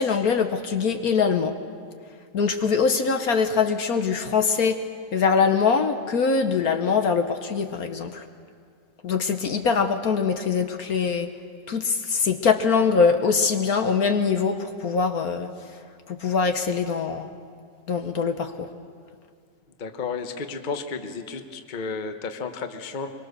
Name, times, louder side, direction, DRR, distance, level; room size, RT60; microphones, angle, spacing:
voice 1, 0.0-1.6 2.3-4.8 5.1-8.2 9.0-11.3 11.7-15.5 16.1-17.3 17.9-18.7, left 5 dB, 60° left, 7 dB, 1.3 m, -23 dB
voice 2, 19.8-23.1, left 4 dB, 35° left, 7 dB, 0.9 m, -32 dB
23.5 x 23.0 x 6.7 m, 2.1 s
omnidirectional pair, 2.0 m